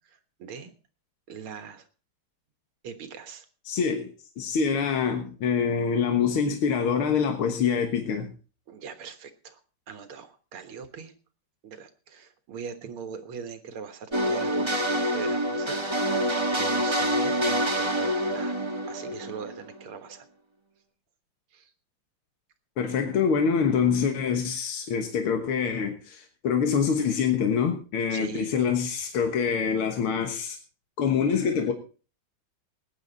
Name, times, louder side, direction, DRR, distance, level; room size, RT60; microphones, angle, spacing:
voice 1, 0.1-0.7 1.3-1.9 2.8-3.5 8.7-9.6 9.9-11.1 11.6-18.6 18.9-20.3 21.5-21.7 28.1-28.5, right 6 dB, 80° right, 2.3 m, -41 dB
voice 2, 3.7-4.1 4.4-8.3 22.8-30.6 31.0-31.7, left 6 dB, 80° left, 2.2 m, -25 dB
sound 1, 14.1-19.9, equal, 15° right, 1.0 m, -26 dB
19.5 x 9.8 x 4.0 m
omnidirectional pair, 2.3 m